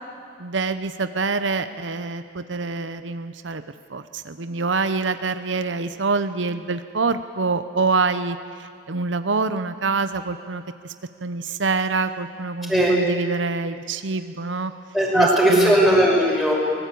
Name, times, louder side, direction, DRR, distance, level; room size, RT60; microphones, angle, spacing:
voice 1, 0.4-3.6 3.9-10.6 11.2-14.7 15.1-15.8, right 4 dB, 80° right, 10 dB, 0.9 m, -26 dB
voice 2, 14.9-16.5, equal, ahead, -3 dB, 5.8 m, -17 dB
24.0 x 18.5 x 8.5 m, 2.3 s
head